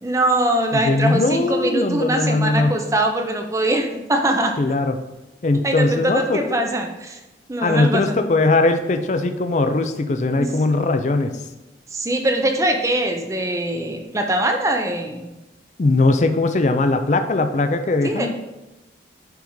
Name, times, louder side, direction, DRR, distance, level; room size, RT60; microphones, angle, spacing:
voice 1, 0.0-4.5 5.6-7.2 7.5-8.2 10.4-10.5 11.9-15.3 18.0-18.3, right 1 dB, 15° right, 4 dB, 0.5 m, -22 dB
voice 2, 0.7-2.8 4.6-4.9 5.4-6.4 7.6-11.3 15.8-18.3, left 2 dB, 40° left, 8 dB, 0.4 m, -20 dB
10.0 x 3.6 x 3.1 m, 1.0 s
head